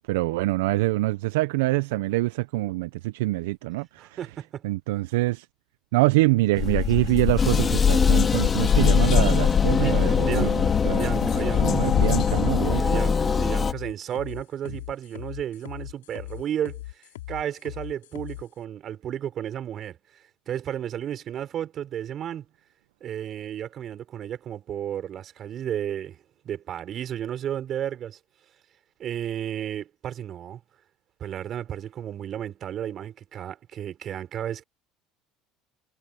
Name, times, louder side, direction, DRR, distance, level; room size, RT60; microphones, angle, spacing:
voice 1, 0.1-4.1 4.6-5.4 5.9-11.1 11.6-13.0, right 20 dB, 80° right, 0.8 m, -25 dB
voice 2, 4.0-4.7 9.7-11.8 12.7-22.5 23.0-28.2 29.0-30.6 31.2-34.6, right 10 dB, 50° right, 4.5 m, -33 dB
sound 1, 6.5-12.6, left 10 dB, 50° left, 4.5 m, -25 dB
sound 2, 7.4-13.7, left 5 dB, 30° left, 3.1 m, -23 dB
sound 3, 10.7-18.4, left 16 dB, 85° left, 5.4 m, -39 dB
hypercardioid pair, 75°, 0 cm